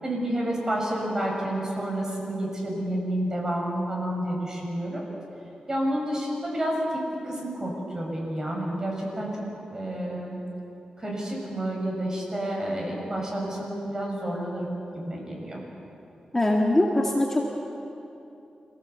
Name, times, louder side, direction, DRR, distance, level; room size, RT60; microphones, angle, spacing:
voice 1, 0.0-5.0 5.7-9.4 9.7-10.4 11.0-15.6, right 1 dB, 25° right, -2 dB, 6.8 m, -30 dB
voice 2, 16.3-17.5, left 1 dB, 15° left, -1 dB, 2.2 m, -22 dB
26.5 x 17.5 x 8.4 m, 2.8 s
wide cardioid pair, 105°, 2 cm